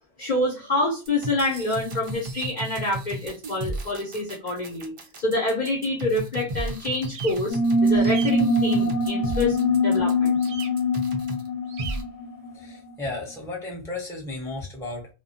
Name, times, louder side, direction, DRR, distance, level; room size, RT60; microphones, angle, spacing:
voice 1, 0.2-4.9 5.2-9.6 9.8-10.4, left 2 dB, 45° left, -3 dB, 0.8 m, -27 dB
sound 1, 1.1-11.5 11.8-12.0, right 2 dB, 45° right, 0.4 m, -34 dB
sound 2, 6.9-7.4 7.9-8.3 10.4-10.7 11.7-12.0, right 7 dB, 70° right, 0.8 m, -37 dB
sound 3, 7.5-12.7, left 1 dB, 80° left, 0.9 m, -23 dB
voice 2, 12.5-15.1, left 2 dB, 5° left, -2 dB, 0.9 m, -34 dB
2.3 x 2.1 x 2.7 m, 0.31 s
omnidirectional pair, 1.2 m